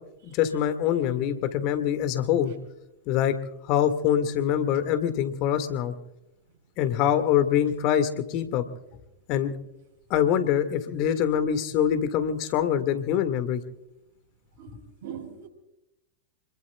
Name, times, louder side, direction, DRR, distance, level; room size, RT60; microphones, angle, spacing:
voice 1, 0.2-2.5 3.1-3.3 3.7-5.9 6.8-8.6 9.3-9.5 10.1-13.6, left 9 dB, 40° left, 9 dB, 1.9 m, -24 dB
voice 2, 14.6-15.5, right 8 dB, 60° right, 0 dB, 4.6 m, -41 dB
29.0 x 21.5 x 2.3 m, 0.87 s
figure-of-eight pair, 90°, 0 cm